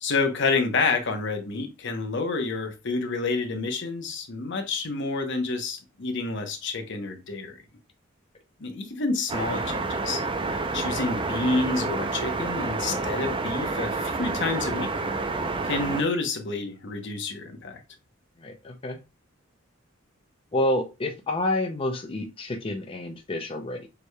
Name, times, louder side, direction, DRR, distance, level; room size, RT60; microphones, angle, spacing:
voice 1, 0.0-7.6 8.6-14.9 15.6-17.8, left 3 dB, 65° left, 0.9 m, -29 dB
sound 1, 9.3-16.0, right 3 dB, 25° right, 0.5 m, -29 dB
voice 2, 18.4-19.0 20.5-23.9, left 1 dB, 25° left, 0.5 m, -29 dB
6.8 x 3.2 x 2.3 m
head